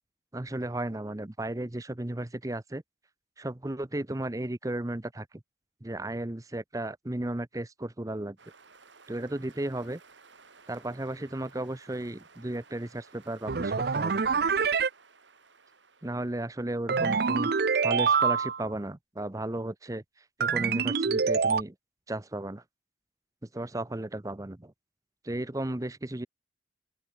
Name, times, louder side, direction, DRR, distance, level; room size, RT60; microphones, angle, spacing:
voice 1, 0.3-2.8 3.4-5.3 5.8-8.4 9.1-10.0 10.7-14.2 16.0-17.5 17.8-20.0 20.4-21.7 22.1-22.6 23.5-24.7 25.2-26.3, right 1 dB, 20° right, 0.7 m, -34 dB
sound 1, 8.4-16.8, right 4 dB, 85° right, 5.2 m, -57 dB
sound 2, 13.5-14.9 16.9-18.7 20.4-21.6, right 5 dB, 55° right, 0.6 m, -26 dB
open air
head